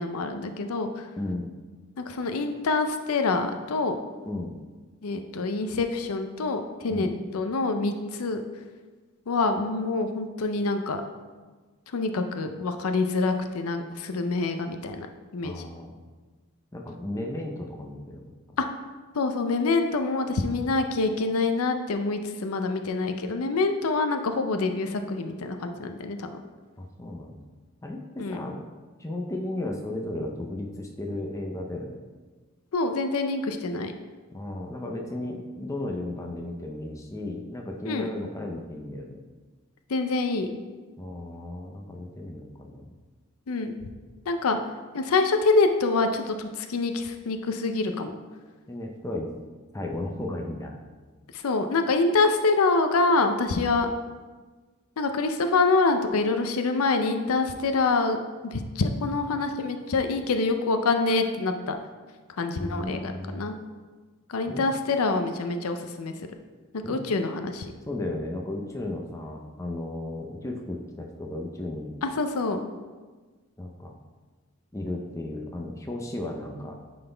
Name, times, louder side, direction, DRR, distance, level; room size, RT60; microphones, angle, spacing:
voice 1, 0.0-1.0 2.0-4.0 5.0-8.4 9.3-11.0 11.9-15.1 15.3-15.6 18.6-18.7 19.1-26.3 28.2-28.4 32.7-33.9 37.8-38.1 39.9-40.5 43.5-43.7 44.3-44.6 44.9-48.1 51.3-53.9 55.0-61.7 62.4-63.5 64.3-66.1 66.9-67.7 72.0-72.6, left 3 dB, 85° left, 7 dB, 0.5 m, -26 dB
voice 2, 1.2-1.5 4.3-4.5 6.9-7.1 15.4-16.0 16.7-18.3 26.8-27.4 27.8-28.6 29.0-32.0 34.3-39.2 41.0-42.8 48.7-49.3 49.7-50.8 62.5-63.5 64.5-64.6 66.8-67.0 67.9-71.9 73.6-73.9 74.7-76.8, left 1 dB, 15° left, 1 dB, 0.5 m, -34 dB
9.1 x 3.9 x 3.3 m, 1.4 s
head